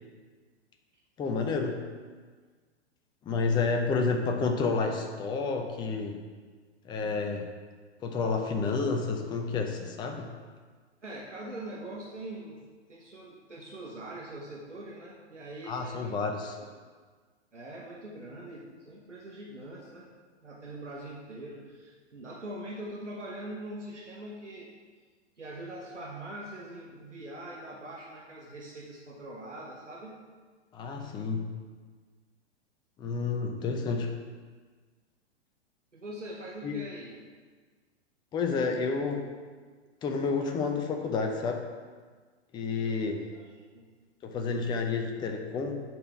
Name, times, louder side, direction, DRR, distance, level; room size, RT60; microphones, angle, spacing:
voice 1, 1.2-1.9 3.3-6.2 6.8-7.5 8.0-10.3 15.7-16.5 30.7-31.5 33.0-34.1 36.6-36.7 38.3-39.3 40.0-41.7 42.5-43.2 44.2-45.8, left 4 dB, 15° left, 4 dB, 0.6 m, -30 dB
voice 2, 11.0-12.6 12.9-16.2 16.6-16.7 17.5-20.1 20.4-24.7 25.4-30.2 35.9-37.2 42.8-43.9, right 1 dB, 90° right, -3 dB, 1.1 m, -43 dB
8.0 x 4.4 x 5.8 m, 1.5 s
figure-of-eight pair, 110°, 35 cm